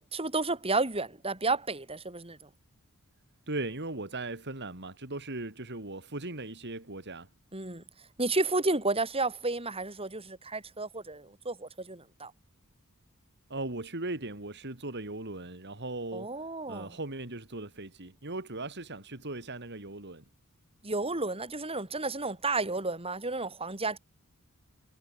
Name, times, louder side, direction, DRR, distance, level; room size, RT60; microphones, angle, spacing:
voice 1, 0.0-2.5 7.5-7.8 8.2-12.3 16.1-16.9 20.8-24.0, right 3 dB, 25° right, 5.0 m, -32 dB
voice 2, 3.5-7.3 13.5-16.3 16.7-20.2, right 2 dB, 50° right, 3.5 m, -38 dB
head